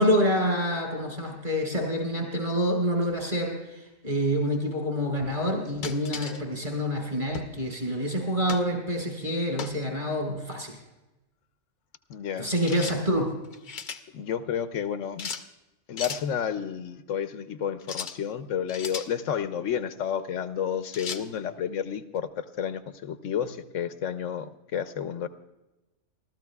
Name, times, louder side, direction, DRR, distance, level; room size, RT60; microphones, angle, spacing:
voice 1, 0.0-10.7 12.4-13.3, equal, 40° right, -1 dB, 5.3 m, -27 dB
sound 1, 5.8-6.4 7.3-7.6 8.5-8.7 9.6-9.8 12.7-13.0 13.4-14.0 15.2-15.5 16.0-16.2 17.8-18.2 18.7-19.1 20.9-21.2, left 6 dB, 50° left, 0.7 m, -36 dB
voice 2, 12.1-12.5 14.1-15.3 15.9-25.3, left 8 dB, 85° left, 10 dB, 1.1 m, -31 dB
28.5 x 13.5 x 2.4 m, 1.0 s
omnidirectional pair, 1.3 m